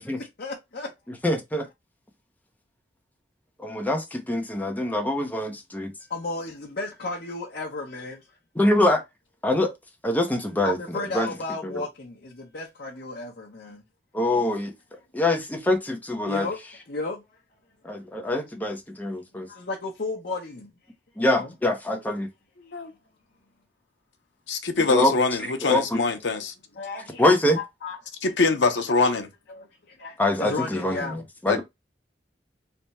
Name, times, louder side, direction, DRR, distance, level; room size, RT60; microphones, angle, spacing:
voice 1, 0.2-0.9 6.1-8.2 10.6-13.8 16.3-16.6 16.9-17.2 19.3-20.7 21.3-21.5 25.9-26.0 26.8-27.2 27.6-28.0 28.2-28.3 28.9-29.0 29.5-31.2, left 3 dB, 60° left, 0.8 m, -34 dB
voice 2, 1.2-1.7 3.6-5.9 8.5-9.0 9.4-9.7 10.0-11.3 11.6-11.9 14.1-16.5 17.8-19.5 21.2-22.3 24.9-25.2 25.4-26.0 27.2-27.6 30.2-31.6, left 1 dB, 10° left, 0.7 m, -24 dB
voice 3, 24.5-26.5 28.2-29.3 31.5-31.6, left 3 dB, 90° left, 0.7 m, -24 dB
3.4 x 2.2 x 4.0 m
head